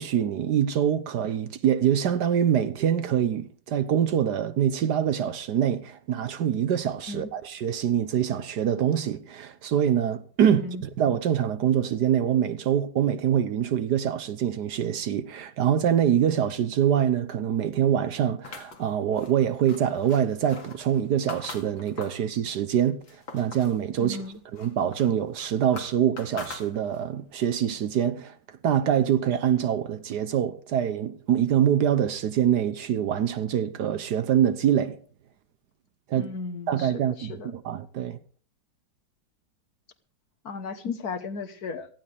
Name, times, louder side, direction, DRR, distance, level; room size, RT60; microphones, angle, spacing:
voice 1, 0.0-24.2 24.5-28.4 28.6-35.0 36.1-36.3 36.7-38.2, right 9 dB, 65° right, 1.3 m, -25 dB
voice 2, 10.4-10.8 24.0-24.4 36.1-37.5 40.4-41.9, left 4 dB, 55° left, 1.6 m, -35 dB
sound 1, 18.4-22.3 22.7-23.8 24.1-27.2, left 4 dB, 90° left, 3.0 m, -43 dB
18.0 x 15.0 x 3.4 m
omnidirectional pair, 2.1 m